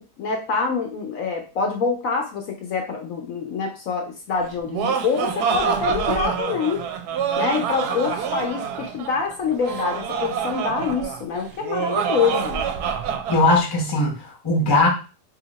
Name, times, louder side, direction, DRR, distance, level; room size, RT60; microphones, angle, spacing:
voice 1, 0.2-6.8 7.4-12.6, left 5 dB, 65° left, 2 dB, 0.9 m, -25 dB
Laughter, 4.4-13.6, right 7 dB, 75° right, 1.1 m, -26 dB
voice 2, 13.3-14.9, left 2 dB, 25° left, 0 dB, 0.5 m, -19 dB
2.9 x 2.8 x 3.9 m, 0.34 s
omnidirectional pair, 1.8 m